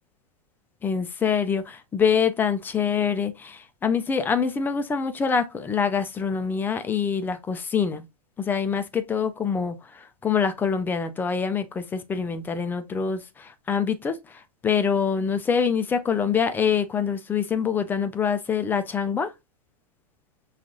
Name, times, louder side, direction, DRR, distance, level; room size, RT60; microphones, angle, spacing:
voice 1, 0.8-8.0 8.4-19.3, left 6 dB, 10° left, 0.3 m, -25 dB
5.8 x 2.4 x 2.5 m
hypercardioid pair, 130°, 20 cm